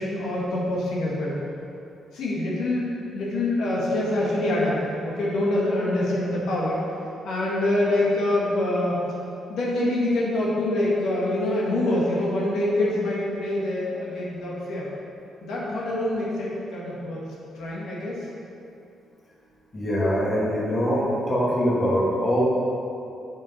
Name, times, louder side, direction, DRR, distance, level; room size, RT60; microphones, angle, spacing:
voice 1, 0.0-1.3 2.1-6.8 7.2-9.0 9.5-14.9 15.4-17.2 17.6-18.2, left 1 dB, 75° left, -5 dB, 1.7 m, -25 dB
voice 2, 19.7-22.4, equal, 25° left, -6 dB, 1.8 m, -23 dB
6.0 x 5.8 x 5.5 m, 2.7 s
cardioid pair, 125°, 0 cm